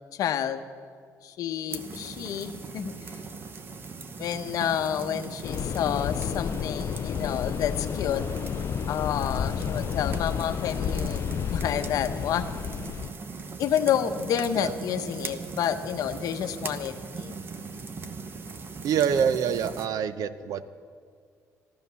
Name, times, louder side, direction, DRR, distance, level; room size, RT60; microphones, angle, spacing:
voice 1, 0.1-0.6 1.2-3.2 4.2-8.2 8.9-12.6 13.6-17.3, left 9 dB, 70° left, 8 dB, 0.9 m, -29 dB
sound 1, 1.7-19.9, right 4 dB, 35° right, 1.0 m, -39 dB
sound 2, 5.4-13.1, left 8 dB, 45° left, 0.4 m, -31 dB
voice 2, 18.8-20.6, right 7 dB, 70° right, 14 dB, 0.7 m, -26 dB
14.5 x 12.5 x 6.9 m, 2.1 s
cardioid pair, 135°, 6 cm